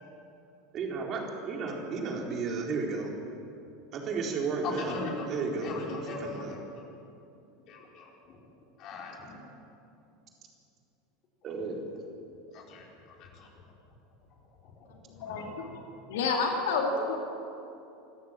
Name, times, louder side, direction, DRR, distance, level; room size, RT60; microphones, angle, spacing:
voice 1, 0.7-3.1 3.9-5.0 5.3-5.7 6.0-6.6 11.4-11.9, right 4 dB, 40° right, 0 dB, 4.1 m, -33 dB
voice 2, 4.6-5.3 5.6-6.6 7.7-8.1 8.8-9.4 12.5-12.8 13.2-13.5 15.2-15.7, left 3 dB, 45° left, -1 dB, 4.8 m, -39 dB
voice 3, 15.2-15.8 16.1-17.2, left 4 dB, 65° left, 1 dB, 2.2 m, -29 dB
26.0 x 14.0 x 7.6 m, 2.7 s
figure-of-eight pair, 80°, 0 cm